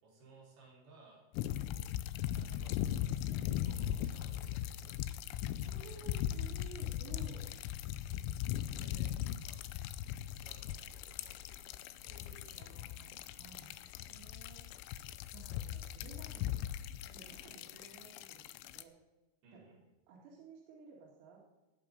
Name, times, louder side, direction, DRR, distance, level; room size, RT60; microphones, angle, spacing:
voice 1, 0.0-1.3 1.6-1.9 2.2-5.2 8.0-8.3 8.6-9.6 10.3-12.9 13.7-13.9 17.3-17.8 19.4-19.8, right 3 dB, 55° right, -5 dB, 6.3 m, -61 dB
sound 1, 1.3-18.8, left 12 dB, 85° left, 3.0 m, -39 dB
voice 2, 5.5-7.5 12.6-14.7 15.3-16.6 17.1-18.9 19.5-19.6 20.1-21.4, right 5 dB, 90° right, -3 dB, 4.8 m, -55 dB
19.0 x 8.6 x 5.4 m, 1.1 s
omnidirectional pair, 5.9 m